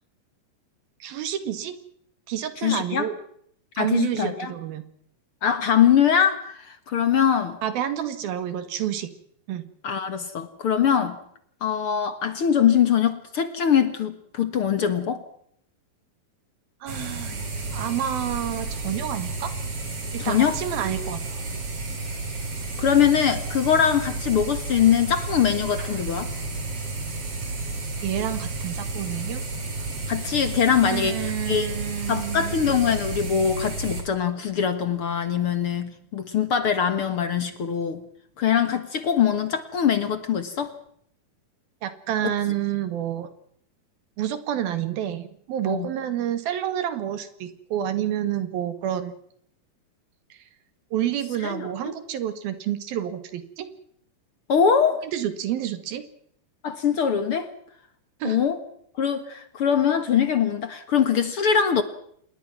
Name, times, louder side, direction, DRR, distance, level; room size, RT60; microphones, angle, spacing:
voice 1, 1.0-1.8 2.3-3.2 3.8-4.8 7.6-9.1 9.5-9.6 16.8-19.5 20.2-21.2 28.0-29.5 30.8-32.5 41.8-43.3 44.2-49.2 50.3-50.4 50.9-53.7 55.0-56.0 58.2-58.4, right 11 dB, 85° right, 11 dB, 3.8 m, -29 dB
voice 2, 2.6-3.1 3.8-4.5 5.4-7.6 9.8-11.2 11.6-15.2 20.2-20.6 22.8-26.3 30.1-31.2 31.5-31.7 32.1-38.0 38.4-40.7 45.7-45.9 51.4-51.7 54.5-55.0 56.6-57.5 58.2-58.6 59.0-61.8, left 8 dB, 50° left, 11 dB, 1.9 m, -22 dB
sound 1, 16.9-34.0, right 3 dB, 40° right, 5.2 m, -32 dB
27.5 x 20.5 x 6.0 m, 0.67 s
omnidirectional pair, 4.1 m